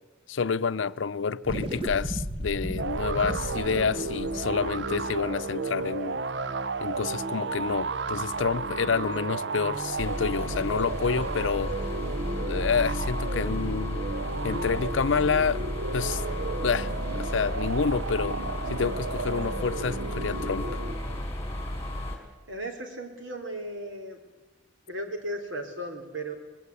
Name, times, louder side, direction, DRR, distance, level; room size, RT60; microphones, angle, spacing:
voice 1, 0.3-6.2 6.8-11.7 12.3-14.0 14.4-15.6 15.9-16.2 16.6-18.4 18.7-20.7, left 5 dB, 85° left, 0.6 m, -28 dB
sound 1, 1.4-6.1, equal, 30° right, 1.5 m, -35 dB
sound 2, 2.8-21.2, right 3 dB, 70° right, 0.7 m, -33 dB
sound 3, 10.0-22.2, left 1 dB, 15° left, 3.5 m, -33 dB
voice 2, 22.5-24.2 24.9-26.3, right 1 dB, 90° right, 3.4 m, -36 dB
20.0 x 16.5 x 8.3 m
head